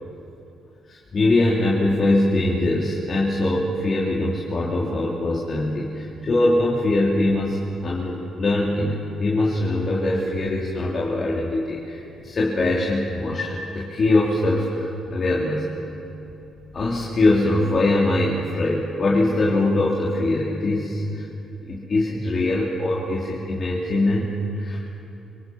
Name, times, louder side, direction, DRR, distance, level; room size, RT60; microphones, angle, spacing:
voice 1, 0.9-15.7 16.7-21.3 21.6-25.0, left 2 dB, 45° left, -5 dB, 3.5 m, -22 dB
26.5 x 23.5 x 6.3 m, 2.8 s
cardioid pair, 90°, 0 cm